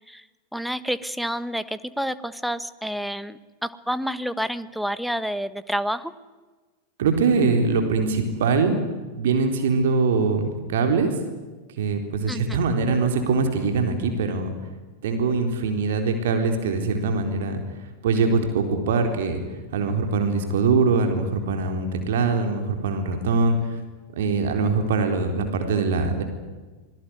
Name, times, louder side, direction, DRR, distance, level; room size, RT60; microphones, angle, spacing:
voice 1, 0.5-6.1 12.3-12.6, equal, ahead, 14 dB, 1.2 m, -29 dB
voice 2, 7.0-8.8 9.1-11.1 11.8-14.5 15.0-17.6 18.0-19.4 19.7-23.8 24.1-26.2, right 4 dB, 55° right, 5 dB, 4.0 m, -22 dB
26.0 x 21.0 x 9.6 m, 1.3 s
figure-of-eight pair, 90°, 0 cm